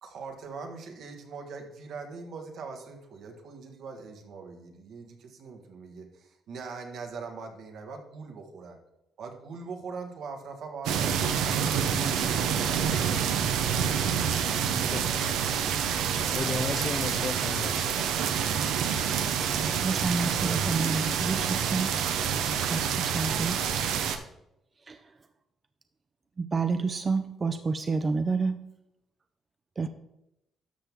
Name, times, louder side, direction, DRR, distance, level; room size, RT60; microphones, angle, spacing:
voice 1, 0.0-8.8 9.2-11.5, right 4 dB, 75° right, 4 dB, 1.6 m, -42 dB
sound 1, 10.8-24.2, right 8 dB, 90° right, 0.7 m, -27 dB
voice 2, 16.3-18.0, left 5 dB, 40° left, 11 dB, 0.5 m, -34 dB
voice 3, 19.8-21.9 22.7-23.8 24.9-25.0 26.4-28.6 29.8-29.9, right 4 dB, 35° right, 8 dB, 0.6 m, -29 dB
12.5 x 6.0 x 3.6 m, 0.84 s
cardioid pair, 90°, 0 cm